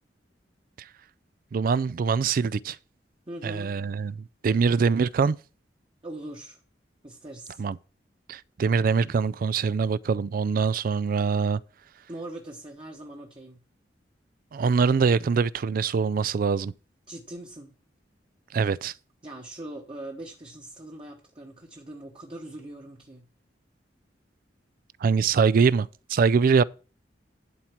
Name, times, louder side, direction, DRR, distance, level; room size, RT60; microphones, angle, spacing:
voice 1, 1.5-2.8 3.4-5.4 7.6-7.8 8.3-11.6 14.5-16.7 18.5-18.9 25.0-26.6, right 5 dB, 50° right, 0.3 m, -23 dB
voice 2, 3.3-3.7 6.0-6.6 7.0-7.6 12.1-13.6 17.1-17.7 19.2-23.3, right 1 dB, 30° right, 1.2 m, -41 dB
11.0 x 4.4 x 6.0 m
head